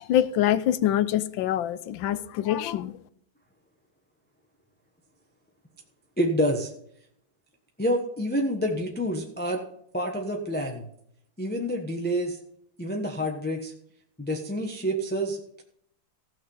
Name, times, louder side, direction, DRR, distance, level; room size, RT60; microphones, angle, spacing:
voice 1, 0.0-2.9, left 12 dB, 80° left, 1.4 m, -25 dB
voice 2, 6.2-6.7 7.8-9.6 9.9-10.9 11.4-12.4 12.8-13.7 14.2-15.6, equal, 5° left, 0.9 m, -28 dB
16.5 x 6.0 x 5.5 m
omnidirectional pair, 2.1 m